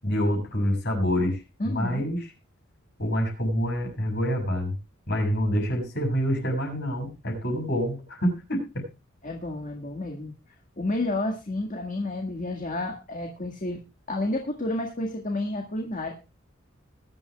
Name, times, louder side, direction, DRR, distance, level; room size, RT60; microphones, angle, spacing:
voice 1, 0.0-2.3 3.0-4.7 5.1-8.8, equal, 55° left, 2 dB, 6.7 m, -27 dB
voice 2, 1.6-2.0 9.2-10.3 10.8-13.8 14.1-16.1, left 2 dB, 40° left, 2 dB, 1.8 m, -30 dB
21.0 x 11.5 x 2.3 m, 0.29 s
head